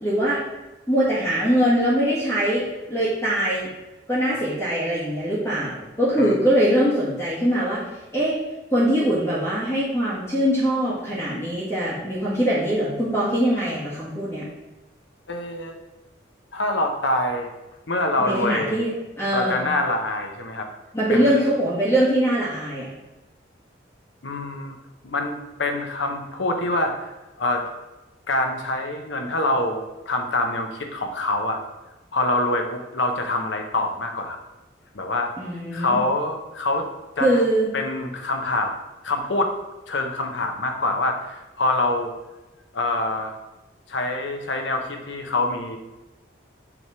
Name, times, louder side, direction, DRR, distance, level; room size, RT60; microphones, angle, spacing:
voice 1, 0.0-0.4 0.9-3.7 4.1-7.8 8.1-8.4 8.7-14.4 18.2-18.9 19.2-19.7 20.9-22.9 35.4-36.0 37.2-37.7, equal, 15° left, -10 dB, 1.5 m, -22 dB
voice 2, 15.3-15.8 16.5-17.5 17.9-18.8 19.3-20.7 21.1-21.2 24.2-24.7 25.0-27.1 27.4-27.7 28.3-31.6 32.1-34.4 34.9-35.3 35.7-36.9 37.2-37.4 37.7-38.7 39.0-39.5 39.9-42.1 42.7-43.4 43.9-45.8, left 2 dB, 75° left, 4 dB, 1.0 m, -25 dB
7.0 x 3.5 x 4.8 m, 1.0 s
head